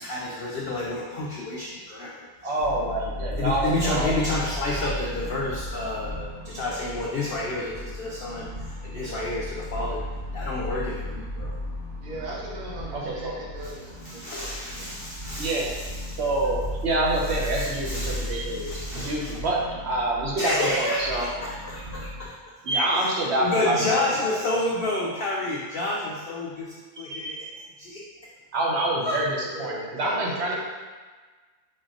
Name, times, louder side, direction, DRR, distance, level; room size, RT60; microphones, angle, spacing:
voice 1, 0.0-2.3 3.4-10.0 10.3-11.5 14.0-15.7 16.1-16.2 17.5-19.3 20.4-22.5 23.4-27.4 27.8-28.1 29.0-29.2, left 2 dB, 70° left, -3 dB, 0.5 m, -30 dB
voice 2, 2.4-4.6 9.0-9.3 10.5-10.7 12.7-13.3 15.4-15.7 16.1-21.3 22.6-24.4 27.0-27.4 28.5-30.5, right 1 dB, 55° right, -3 dB, 0.9 m, -27 dB
sound 1, 2.6-22.3, left 1 dB, 90° right, 1.7 m, -35 dB
voice 3, 12.0-15.0 29.5-30.5, right 1 dB, 70° right, -5 dB, 1.4 m, -40 dB
4.3 x 3.1 x 3.7 m, 1.4 s
omnidirectional pair, 1.6 m